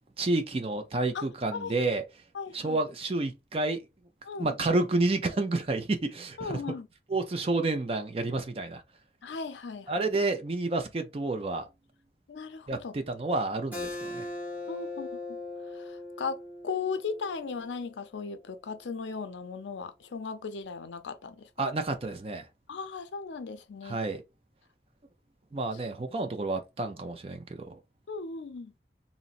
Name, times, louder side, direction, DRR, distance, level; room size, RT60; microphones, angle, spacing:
voice 1, 0.2-2.0 2.5-3.8 4.4-6.6 7.1-8.8 9.9-11.6 12.7-14.3 21.6-22.4 23.8-24.2 25.5-27.8, right 2 dB, 30° right, 0.4 m, -30 dB
voice 2, 2.3-2.8 4.2-4.5 6.4-6.9 9.2-10.1 12.3-12.9 14.7-15.4 15.7-16.4 16.6-21.5 22.7-24.0 28.1-28.7, left 5 dB, 85° left, 0.5 m, -37 dB
Keyboard (musical), 13.7-18.9, left 2 dB, 10° right, 1.0 m, -40 dB
3.8 x 2.0 x 2.4 m
head